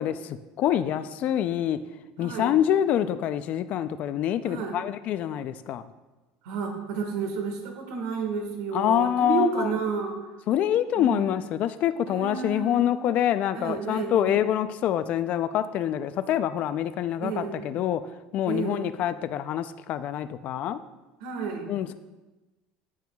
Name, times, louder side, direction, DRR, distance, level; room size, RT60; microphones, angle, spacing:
voice 1, 0.0-1.8 2.2-5.8 8.7-9.7 10.5-18.0 18.3-20.8 21.7-21.9, left 10 dB, 45° left, 12 dB, 0.4 m, -26 dB
voice 2, 2.2-2.6 4.4-4.8 6.4-10.2 10.9-11.3 12.1-13.1 13.5-14.5 17.2-17.6 18.5-18.9 21.2-21.7, right 5 dB, 85° right, 3 dB, 1.6 m, -31 dB
12.0 x 7.8 x 2.3 m, 1.1 s
cardioid pair, 145°, 3 cm